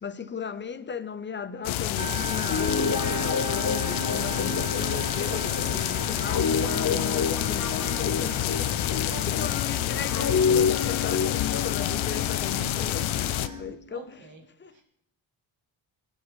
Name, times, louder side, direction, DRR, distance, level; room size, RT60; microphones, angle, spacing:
voice 1, 0.0-14.3 14.6-14.8, left 6 dB, 25° left, 0.7 m, -37 dB
sound 1, 1.6-13.5, left 13 dB, 85° left, 0.7 m, -28 dB
sound 2, 2.0-13.6, right 4 dB, 15° right, 0.7 m, -41 dB
Guitar, 2.4-9.6 10.1-13.8, left 5 dB, 45° left, 1.1 m, -29 dB
voice 2, 9.1-9.6 13.4-14.4 14.7-14.8, right 5 dB, 65° right, 2.9 m, -47 dB
24.5 x 9.2 x 3.2 m
cardioid pair, 115°, 47 cm